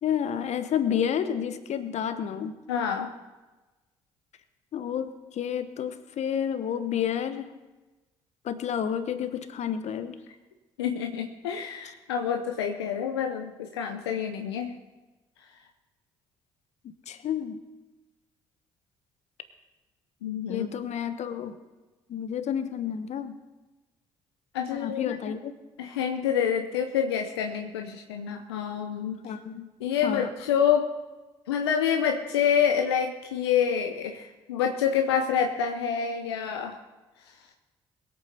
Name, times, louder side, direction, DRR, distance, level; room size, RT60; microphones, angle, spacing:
voice 1, 0.0-2.6 4.7-7.5 8.4-10.2 17.1-17.6 20.5-21.6 22.1-23.3 24.8-25.5 29.2-29.7 30.0-30.3, left 8 dB, 60° left, 11 dB, 1.1 m, -30 dB
voice 2, 2.7-3.1 10.8-14.8 20.2-20.7 24.5-25.2 25.8-29.2 29.8-30.8 31.5-36.7, left 8 dB, 85° left, 4 dB, 0.7 m, -27 dB
22.0 x 8.6 x 4.3 m, 1.1 s
hypercardioid pair, 45°, 13 cm